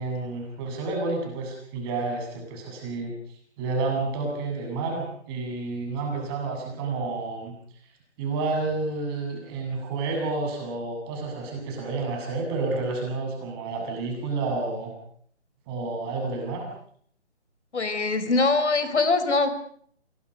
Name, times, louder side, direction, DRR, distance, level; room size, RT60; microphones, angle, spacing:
voice 1, 0.0-3.1 3.6-7.6 8.2-14.9 15.7-16.7, right 3 dB, 20° right, 1 dB, 7.9 m, -30 dB
voice 2, 17.7-19.5, left 3 dB, 70° left, 11 dB, 5.0 m, -22 dB
25.0 x 23.5 x 6.6 m, 0.63 s
hypercardioid pair, 160°, 35 cm